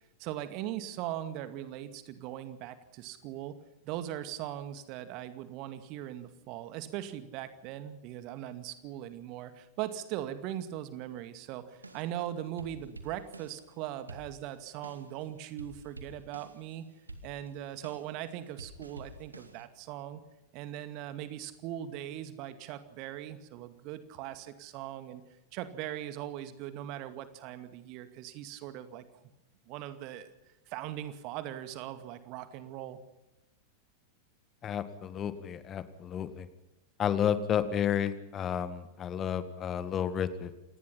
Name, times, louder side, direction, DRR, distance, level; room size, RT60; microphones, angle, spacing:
voice 1, 0.2-3.5 3.9-16.8 17.2-20.2 20.5-25.2 25.5-29.0 29.7-30.3 30.7-33.0, right 12 dB, 40° right, 11 dB, 2.2 m, -40 dB
sound 1, 11.8-13.7 14.1-15.2 15.5-16.7 17.1-19.7, right 1 dB, 80° right, 2.3 m, -49 dB
voice 2, 34.6-36.5 37.0-40.5, left 9 dB, 25° left, 13 dB, 1.8 m, -31 dB
27.5 x 19.5 x 5.7 m, 0.96 s
figure-of-eight pair, 90°, 0 cm